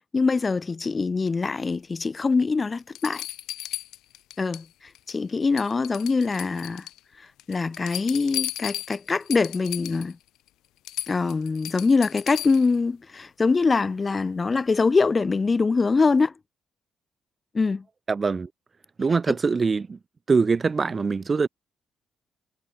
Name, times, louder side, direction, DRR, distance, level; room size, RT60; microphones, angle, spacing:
voice 1, 0.1-3.2 4.4-4.6 5.1-6.9 7.5-10.2 11.1-16.3 17.5-17.8 19.3-19.4, left 4 dB, 30° left, 1.3 m, -23 dB
sound 1, 2.2-2.3 2.9-4.7 4.9-5.3 5.6-7.0 7.4-10.1 10.5-10.6 10.8-12.8 14.4-14.5, left 15 dB, 90° left, 1.2 m, -35 dB
voice 2, 18.1-18.5 19.0-20.0 20.3-21.5, right 4 dB, 35° right, 0.5 m, -23 dB
cardioid pair, 90°, 0 cm